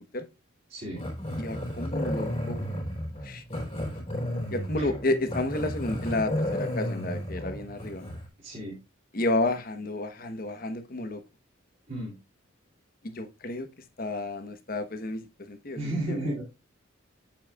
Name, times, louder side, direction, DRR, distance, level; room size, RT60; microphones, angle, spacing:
voice 1, 0.7-1.0 4.8-4.9 8.4-8.8 11.9-12.1 15.7-16.4, right 1 dB, 40° right, 2.6 m, -33 dB
Growling, 1.0-8.3, equal, 30° left, 3.2 m, -33 dB
voice 2, 1.4-2.6 3.2-3.4 3.7-3.9 4.5-8.0 9.1-11.2 13.0-13.7 14.0-16.3, left 2 dB, 45° left, 1.0 m, -31 dB
7.8 x 7.3 x 2.3 m
head